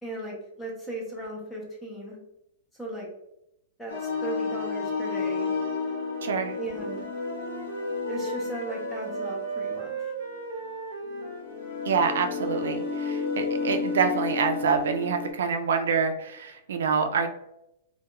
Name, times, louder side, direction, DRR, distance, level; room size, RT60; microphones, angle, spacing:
voice 1, 0.0-2.2 2.7-3.1 3.8-5.5 6.6-7.1 8.1-9.9, right 1 dB, 5° left, -3 dB, 0.5 m, -37 dB
sound 1, 3.9-15.3, left 4 dB, 65° left, 0.7 m, -32 dB
voice 2, 6.2-6.6 11.8-17.3, right 5 dB, 80° right, 6 dB, 0.3 m, -26 dB
Wind instrument woodwind instrument, 6.7-12.4, right 4 dB, 35° right, 0.6 m, -37 dB
2.2 x 2.2 x 2.9 m, 0.81 s
supercardioid pair, 180°, 0 cm